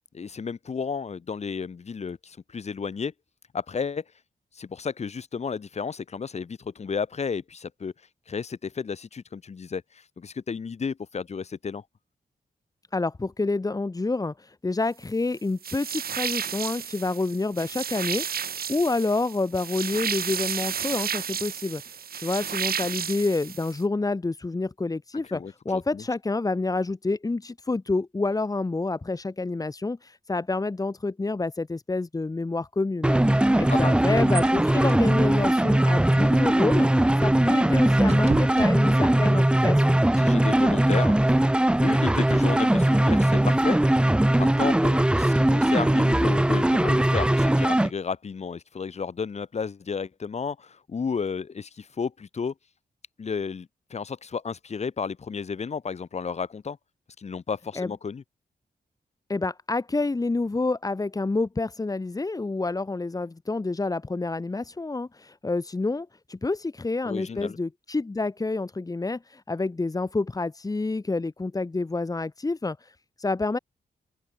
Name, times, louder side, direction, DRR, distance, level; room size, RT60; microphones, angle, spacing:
voice 1, 0.1-3.1 3.5-4.0 4.5-7.9 8.3-11.8 25.2-26.0 33.7-34.0 40.2-41.4 41.8-43.8 44.4-52.5 53.2-56.8 57.2-58.2 67.0-67.6, left 5 dB, 45° left, 2.8 m, -32 dB
voice 2, 12.9-40.0 57.8-57.9 59.3-73.6, left 3 dB, 25° left, 4.3 m, -28 dB
sound 1, 15.6-23.8, right 8 dB, 75° right, 6.1 m, -32 dB
sound 2, 33.0-47.9, right 1 dB, 5° right, 0.7 m, -20 dB
sound 3, 37.2-39.4, right 5 dB, 45° right, 3.7 m, -40 dB
open air
wide cardioid pair, 145°, 16 cm